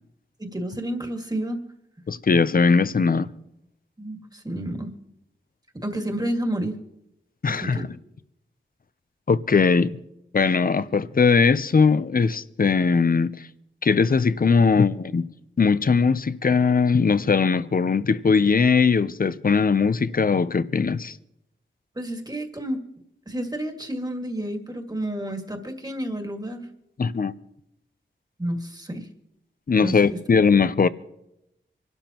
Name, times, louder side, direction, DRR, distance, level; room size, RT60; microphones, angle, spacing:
voice 1, 0.4-1.6 4.0-4.9 5.8-6.7 7.5-7.9 22.0-22.8 23.3-26.6 28.4-29.1 29.8-30.0, right 1 dB, 20° right, 1.9 m, -30 dB
voice 2, 2.1-3.3 7.4-7.8 9.3-10.0 10.3-13.5 13.8-15.3 15.6-21.1 27.0-27.3 29.7-30.9, left 5 dB, 45° left, 0.6 m, -20 dB
26.0 x 12.5 x 3.0 m
wide cardioid pair, 85°, 20 cm